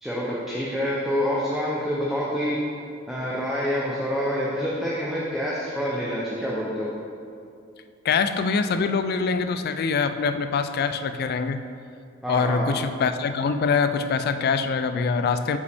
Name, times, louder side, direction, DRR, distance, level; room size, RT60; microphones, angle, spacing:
voice 1, 0.0-2.6 3.1-6.9 12.2-12.7, equal, ahead, -7 dB, 0.7 m, -27 dB
voice 2, 8.0-11.6 12.3-15.6, left 5 dB, 50° left, 10 dB, 0.3 m, -24 dB
8.2 x 5.3 x 3.5 m, 2.4 s
head